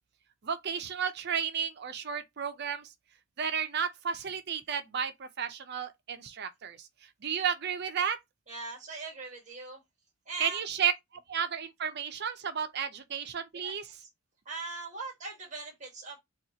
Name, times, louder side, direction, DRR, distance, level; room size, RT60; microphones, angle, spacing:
voice 1, 0.4-2.9 3.4-6.9 7.2-8.2 10.4-10.9 11.3-13.9, right 7 dB, 50° right, 0.5 m, -32 dB
voice 2, 8.5-9.8 10.2-10.6 13.6-13.7 14.0-14.1 14.4-16.2, right 3 dB, 35° right, 1.5 m, -40 dB
4.3 x 2.4 x 2.8 m
head